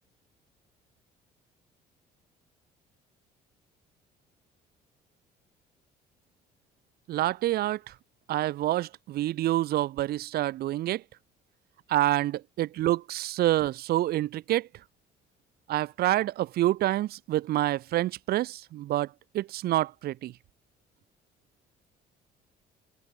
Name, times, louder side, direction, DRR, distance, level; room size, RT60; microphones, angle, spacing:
voice 1, 7.1-7.8 8.3-11.0 11.9-14.7 15.7-20.3, right 14 dB, 65° right, 0.9 m, -27 dB
cardioid pair, 110°, 17 cm